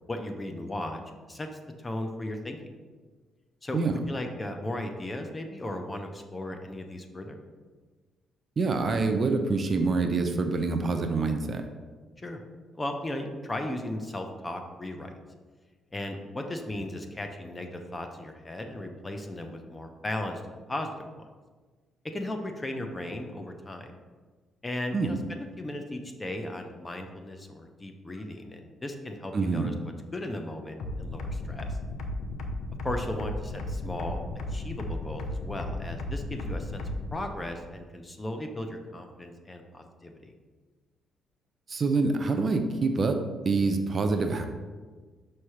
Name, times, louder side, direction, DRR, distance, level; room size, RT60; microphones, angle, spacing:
voice 1, 0.1-1.0 1.3-1.5 1.8-2.6 3.6-7.4 12.2-12.4 12.7-15.2 15.9-21.3 22.0-23.9 24.6-29.7 30.1-31.8 32.8-34.2 34.5-40.3, left 1 dB, 20° left, 5 dB, 0.7 m, -36 dB
voice 2, 8.6-11.6 24.9-25.2 29.3-29.7 41.7-44.5, right 3 dB, 40° right, 6 dB, 0.6 m, -26 dB
sound 1, 30.8-37.2, left 2 dB, 75° left, 0.7 m, -35 dB
5.8 x 3.3 x 5.7 m, 1.4 s
cardioid pair, 90°, 0 cm